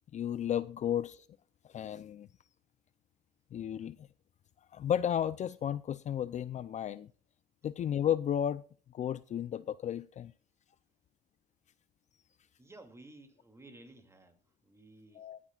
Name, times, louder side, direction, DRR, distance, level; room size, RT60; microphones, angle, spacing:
voice 1, 0.1-1.2 1.7-2.3 3.5-4.0 4.7-7.1 7.6-8.6 8.9-10.3 15.2-15.4, left 9 dB, 45° left, 0.5 m, -33 dB
voice 2, 12.6-15.3, right 2 dB, 15° right, 2.5 m, -55 dB
18.0 x 11.0 x 2.4 m
cardioid pair, 110°, 17 cm